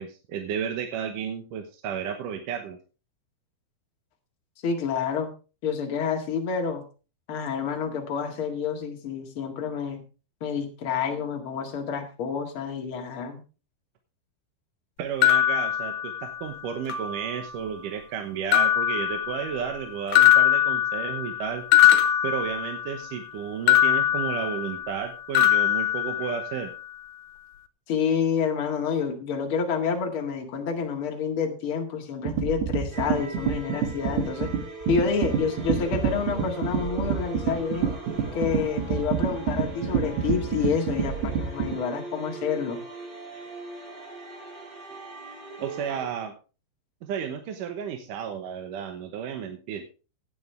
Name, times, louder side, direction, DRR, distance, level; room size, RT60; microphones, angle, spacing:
voice 1, 0.0-2.8 15.0-21.6 22.2-26.7 45.6-46.3 47.0-49.8, right 8 dB, 65° right, 5 dB, 2.4 m, -32 dB
voice 2, 4.6-5.3 5.6-6.8 7.3-10.0 10.4-13.4 27.9-34.5 34.9-37.9 38.3-42.8, left 6 dB, 40° left, 2 dB, 2.2 m, -28 dB
sound 1, 15.2-16.5 16.9-17.7 18.5-19.8 20.1-23.1 23.7-25.1 25.3-26.7, left 12 dB, 85° left, 2.9 m, -22 dB
sound 2, 32.3-41.7, right 7 dB, 85° right, 4.0 m, -27 dB
sound 3, 32.9-46.0, right 2 dB, 25° right, 3.6 m, -40 dB
16.0 x 9.5 x 3.4 m, 0.33 s
omnidirectional pair, 4.5 m